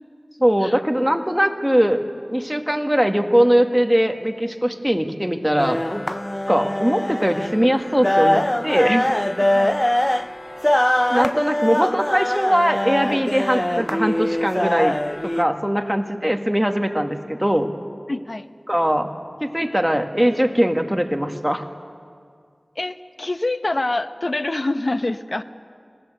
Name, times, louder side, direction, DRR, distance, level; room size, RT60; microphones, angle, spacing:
voice 1, 0.4-2.0 2.3-5.8 6.5-9.1 11.1-15.0 15.2-17.7 18.7-19.1 19.4-21.7, equal, 5° right, 4 dB, 1.8 m, -20 dB
sound 1, 5.6-15.4, left 1 dB, 20° left, 0.6 m, -22 dB
voice 2, 18.1-18.5 22.8-25.4, left 2 dB, 60° left, 10 dB, 0.9 m, -25 dB
26.5 x 19.0 x 7.9 m, 2.1 s
wide cardioid pair, 45°, 0 cm